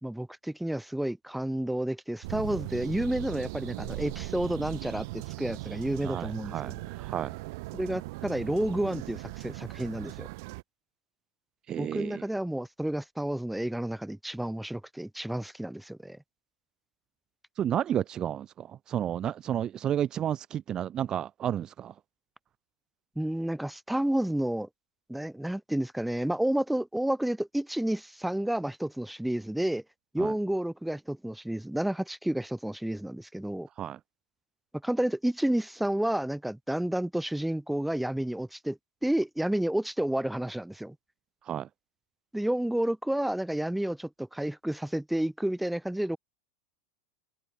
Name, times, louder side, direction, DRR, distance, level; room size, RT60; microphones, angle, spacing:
voice 1, 0.0-6.8 7.7-10.3 11.8-16.2 23.2-24.7 25.1-29.8 30.1-33.7 34.8-40.9 42.3-46.2, right 1 dB, 5° right, 3.0 m, -30 dB
sound 1, 2.2-10.6, right 23 dB, 65° right, 3.7 m, -39 dB
voice 2, 6.0-7.4 11.7-12.2 17.6-21.9 30.2-30.3 33.8-34.0 41.5-41.7, right 10 dB, 35° right, 2.1 m, -32 dB
open air
hypercardioid pair, 105°, 2 cm